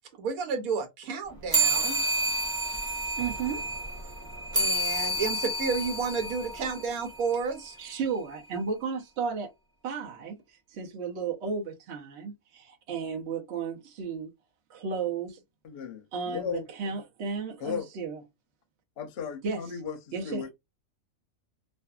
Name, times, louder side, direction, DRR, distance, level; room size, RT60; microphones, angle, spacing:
voice 1, 0.2-2.0 4.5-7.8, right 5 dB, 90° right, 1.2 m, -31 dB
sound 1, 1.5-7.3, right 2 dB, 35° right, 0.3 m, -29 dB
voice 2, 3.2-3.7 7.8-9.5 9.8-10.4 10.7-14.3 14.7-15.4 16.1-18.2 19.4-19.6 20.1-20.5, right 5 dB, 60° right, 0.9 m, -33 dB
voice 3, 15.6-16.6 17.6-17.9 19.0-20.0 20.2-20.5, left 7 dB, 55° left, 0.8 m, -35 dB
2.5 x 2.5 x 2.2 m
omnidirectional pair, 1.5 m